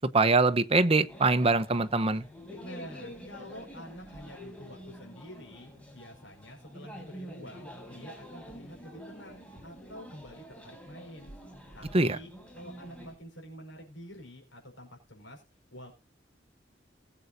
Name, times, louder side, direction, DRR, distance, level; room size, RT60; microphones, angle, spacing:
voice 1, 0.1-2.2 11.9-12.2, right 3 dB, 30° right, 0.8 m, -23 dB
sound 1, 1.1-13.2, equal, 5° left, 4.3 m, -47 dB
voice 2, 2.6-11.3 11.7-12.3 12.5-15.4 15.7-15.9, equal, 80° left, 5.0 m, -47 dB
20.0 x 8.1 x 2.6 m
head